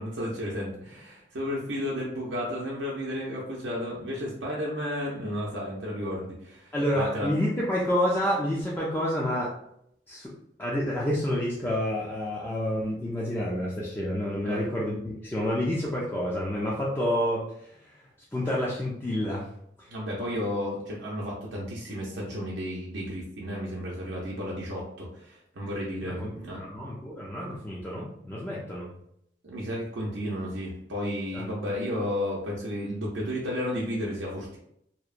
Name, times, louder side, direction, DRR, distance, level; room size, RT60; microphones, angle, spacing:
voice 1, 0.0-7.3 14.4-14.6 19.9-26.6 29.4-34.6, equal, 85° right, -4 dB, 0.6 m, -33 dB
voice 2, 6.7-9.5 10.1-10.3 10.6-17.9 18.3-19.5 19.8-19.9 26.0-28.9 31.3-31.5, equal, 10° left, -5 dB, 0.3 m, -29 dB
2.8 x 2.0 x 2.4 m, 0.73 s
head